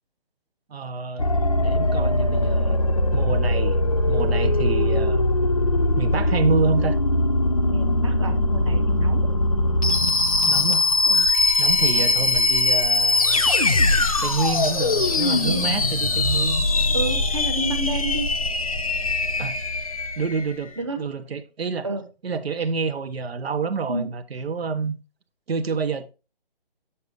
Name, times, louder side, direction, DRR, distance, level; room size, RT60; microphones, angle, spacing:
voice 1, 0.7-1.3 1.6-2.8 3.1-3.8 4.1-5.2 6.0-7.0 10.5-10.8 11.6-13.5 14.2-16.7 19.4-19.6 20.2-21.9 22.2-25.0 25.5-26.1, right 4 dB, 90° right, 0.9 m, -27 dB
sound 1, 1.2-20.5, left 2 dB, 35° left, 0.5 m, -21 dB
voice 2, 7.7-9.3 11.1-11.3 11.9-12.3 15.4-15.6 16.9-18.3 20.8-21.0 21.8-22.0 23.9-24.1, right 2 dB, 30° right, 0.7 m, -30 dB
7.0 x 6.8 x 2.5 m
hypercardioid pair, 175°, 30 cm